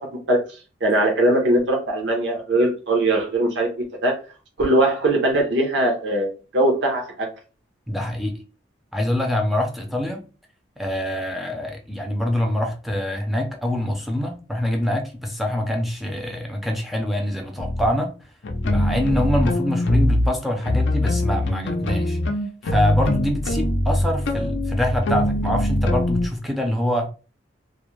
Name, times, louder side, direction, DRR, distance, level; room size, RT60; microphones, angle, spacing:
voice 1, 0.8-3.7 4.0-4.2 4.6-7.3, right 1 dB, 70° right, 0.7 m, -20 dB
voice 2, 7.9-8.4 8.9-10.2 10.8-18.2 18.6-22.2 22.6-27.1, left 1 dB, ahead, 0.4 m, -25 dB
sound 1, 17.6-17.9 18.4-20.3 20.6-26.3, left 1 dB, 70° left, 0.4 m, -22 dB
2.4 x 2.0 x 3.0 m
head